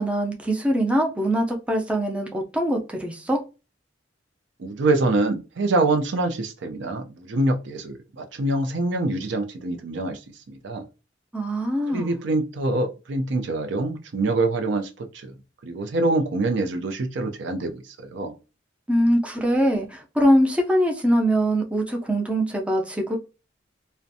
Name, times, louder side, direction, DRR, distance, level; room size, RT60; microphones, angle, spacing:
voice 1, 0.0-3.4 11.3-12.1 18.9-23.2, equal, 5° right, 0.4 m, -22 dB
voice 2, 4.6-10.2 10.5-10.8 11.9-15.3 15.6-18.3, right 2 dB, 70° right, 0.5 m, -25 dB
2.4 x 2.1 x 2.6 m
head